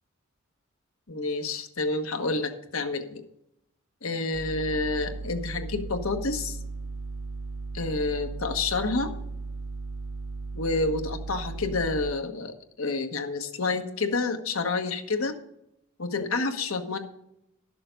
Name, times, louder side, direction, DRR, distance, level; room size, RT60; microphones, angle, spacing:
voice 1, 1.1-3.2 4.0-6.6 7.7-9.1 10.5-15.3 16.0-17.0, left 3 dB, 85° left, 6 dB, 1.3 m, -29 dB
sound 1, 4.3-12.1, right 3 dB, 70° right, 0.5 m, -36 dB
12.5 x 6.9 x 5.2 m, 0.80 s
head